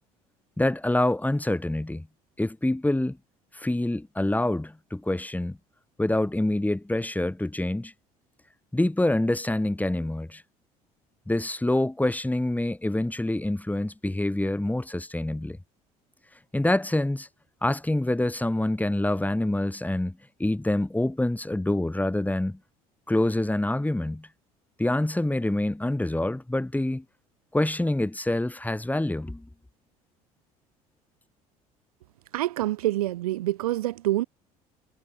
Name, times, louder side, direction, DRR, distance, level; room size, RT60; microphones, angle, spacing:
voice 1, 0.6-2.1 2.4-3.2 3.5-5.6 6.0-7.9 8.7-10.4 11.3-15.6 16.5-17.3 17.6-22.6 23.1-24.3 24.8-27.0 27.5-29.4, left 1 dB, 10° left, 4.9 m, -26 dB
voice 2, 32.3-34.2, right 15 dB, 80° right, 3.7 m, -26 dB
hypercardioid pair, 60°, 19 cm